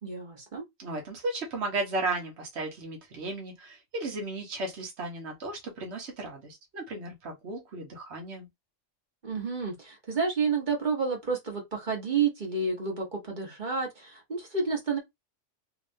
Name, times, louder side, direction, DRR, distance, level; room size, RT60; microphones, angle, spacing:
voice 1, 0.0-0.6 9.2-15.0, right 5 dB, 40° right, 1.3 m, -30 dB
voice 2, 0.8-8.5, right 2 dB, 65° right, 1.3 m, -35 dB
3.3 x 3.1 x 2.6 m
omnidirectional pair, 1.2 m